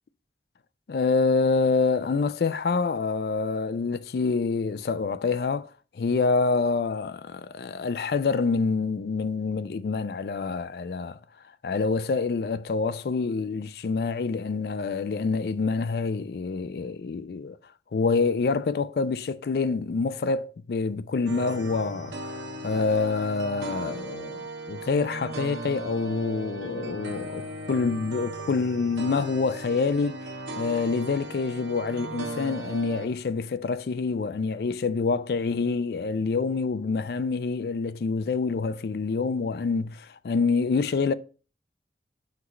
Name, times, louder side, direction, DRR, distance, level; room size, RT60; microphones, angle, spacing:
voice 1, 0.9-5.7 6.0-11.2 11.6-17.6 17.9-30.3 30.6-41.1, left 4 dB, 60° left, 0.4 m, -26 dB
sound 1, 21.3-33.1, right 2 dB, 85° right, 1.0 m, -37 dB
5.8 x 3.1 x 5.7 m
head